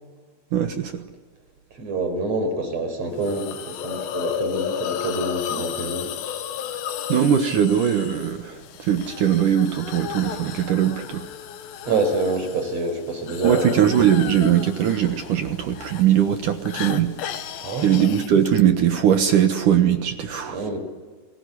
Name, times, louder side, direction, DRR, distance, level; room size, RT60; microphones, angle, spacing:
voice 1, 0.5-1.0 7.1-11.2 13.4-17.1 17.8-20.6, right 9 dB, 60° right, 7 dB, 2.4 m, -20 dB
voice 2, 1.7-6.1 11.9-14.1 17.6-17.9 20.5-20.8, right 2 dB, 40° right, 8 dB, 5.5 m, -26 dB
Hiss, 3.2-18.6, left 9 dB, 85° left, 3.6 m, -34 dB
29.5 x 20.0 x 9.8 m, 1.5 s
omnidirectional pair, 4.8 m